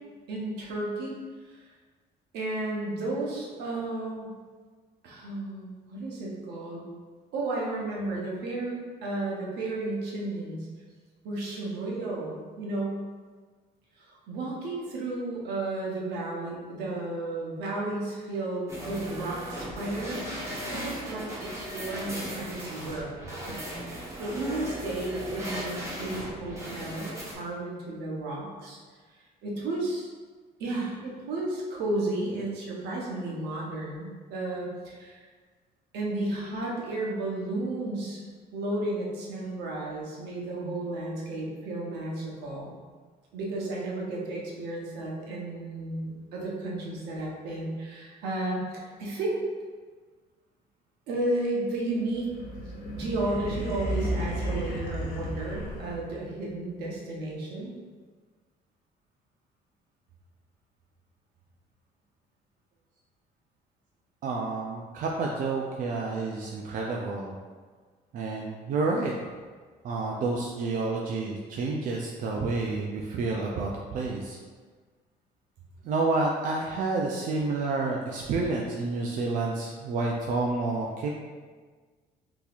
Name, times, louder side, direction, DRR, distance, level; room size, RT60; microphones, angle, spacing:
voice 1, 0.3-1.1 1.4-1.7 2.3-4.3 5.0-6.9 7.3-10.7 11.2-13.0 14.0-20.4 20.7-23.1 23.4-23.6 23.9-28.8 29.4-30.1 30.6-35.2 35.9-38.2 38.5-42.7 43.3-49.4 51.1-52.3 52.9-57.7, right 2 dB, 75° right, -3 dB, 0.9 m, -33 dB
sound 1, 18.7-27.3, equal, 15° right, 1.0 m, -37 dB
sound 2, 52.0-56.3, equal, 65° left, 0.7 m, -33 dB
voice 2, 64.2-67.3 68.1-69.1 69.8-74.4 75.8-81.1, right 3 dB, 50° right, -1 dB, 0.4 m, -29 dB
3.8 x 2.8 x 2.4 m, 1.5 s
cardioid pair, 110°, 17 cm